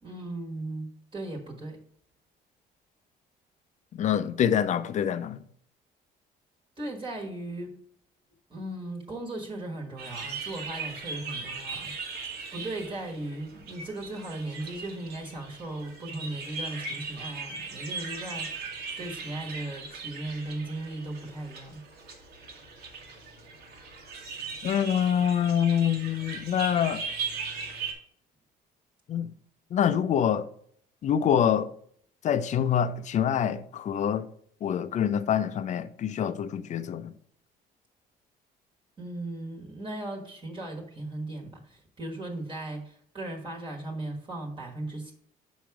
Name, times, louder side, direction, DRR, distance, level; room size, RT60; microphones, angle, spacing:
voice 1, 0.0-1.8 6.8-7.7 8.5-11.9 12.5-18.6 19.0-21.8 39.0-45.1, right 2 dB, 30° right, 1.4 m, -37 dB
voice 2, 3.9-5.4 24.6-27.0 29.1-29.3 29.7-30.5 31.0-31.7 32.2-34.3 34.6-37.1, left 9 dB, 45° left, 0.5 m, -25 dB
sound 1, 10.0-27.9, right 4 dB, 80° right, 1.5 m, -39 dB
6.1 x 4.7 x 4.8 m
cardioid pair, 110°, 17 cm